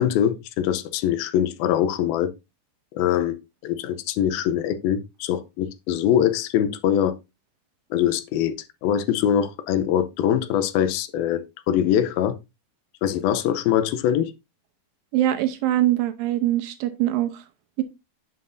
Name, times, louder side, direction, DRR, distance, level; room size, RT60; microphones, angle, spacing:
voice 1, 0.0-2.3 2.9-3.4 3.6-7.1 7.9-8.5 8.8-12.4 13.0-14.3, left 10 dB, 75° left, 2.5 m, -23 dB
voice 2, 15.1-17.4 17.8-17.9, right 13 dB, 80° right, 2.2 m, -23 dB
8.8 x 7.6 x 2.6 m
omnidirectional pair, 4.6 m